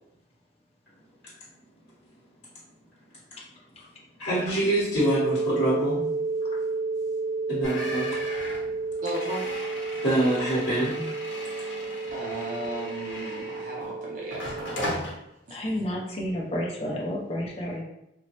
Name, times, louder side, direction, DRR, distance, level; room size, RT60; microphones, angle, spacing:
voice 1, 4.2-6.0 7.5-8.2 10.0-11.1, right 1 dB, 60° left, -9 dB, 1.0 m, -25 dB
sound 1, 4.9-14.9, right 3 dB, 15° right, 0.9 m, -31 dB
sound 2, 7.6-13.9 14.3-15.1, left 1 dB, 85° left, 0.7 m, -37 dB
voice 2, 9.0-9.4 12.1-14.9 15.5-15.8, right 1 dB, 45° right, -4 dB, 0.4 m, -36 dB
voice 3, 15.5-17.8, equal, 35° left, -3 dB, 0.6 m, -30 dB
2.9 x 2.1 x 2.9 m, 0.84 s
head